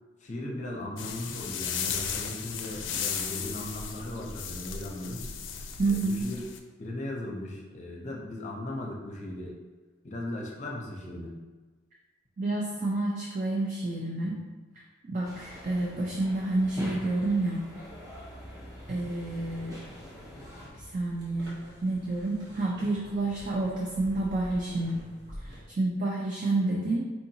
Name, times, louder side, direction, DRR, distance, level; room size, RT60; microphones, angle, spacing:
voice 1, 0.2-5.3 5.8-6.5 6.8-9.5 10.0-11.3, left 1 dB, 40° left, -1 dB, 0.6 m, -37 dB
sound 1, 1.0-6.6, left 7 dB, 80° left, 0.4 m, -35 dB
voice 2, 5.8-6.2 12.4-14.4 15.1-17.6 18.9-19.8 20.8-25.0 25.4-27.1, right 2 dB, 45° right, -3 dB, 0.5 m, -29 dB
sound 2, 15.2-20.7, equal, 20° right, 0.8 m, -44 dB
sound 3, 18.9-25.6, equal, 65° right, 1.2 m, -48 dB
4.5 x 2.8 x 2.7 m, 1.3 s
head